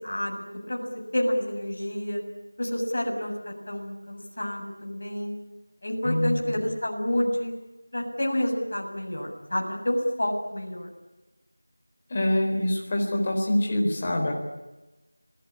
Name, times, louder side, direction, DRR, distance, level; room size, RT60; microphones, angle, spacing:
voice 1, 0.0-0.9 1.1-2.2 2.6-3.3 3.7-5.3 5.8-7.5 7.9-10.9, left 1 dB, 45° left, 0 dB, 7.5 m, -29 dB
voice 2, 6.0-6.6 12.1-14.3, left 1 dB, 20° left, 0 dB, 4.1 m, -25 dB
27.0 x 18.5 x 10.0 m, 1.1 s
figure-of-eight pair, 175°, 0 cm